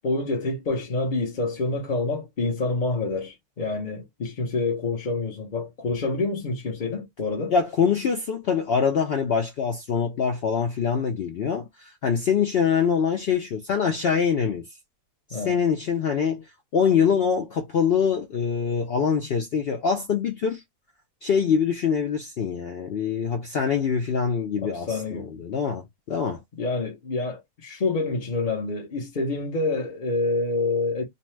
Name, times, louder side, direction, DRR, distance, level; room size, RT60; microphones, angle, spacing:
voice 1, 0.0-7.5 15.3-15.6 24.6-25.3 26.6-31.0, left 3 dB, 40° left, 0.8 m, -27 dB
voice 2, 7.5-14.7 15.3-16.5 16.7-20.6 21.2-26.4, left 6 dB, 75° left, 0.5 m, -24 dB
2.7 x 2.1 x 3.1 m
omnidirectional pair, 1.6 m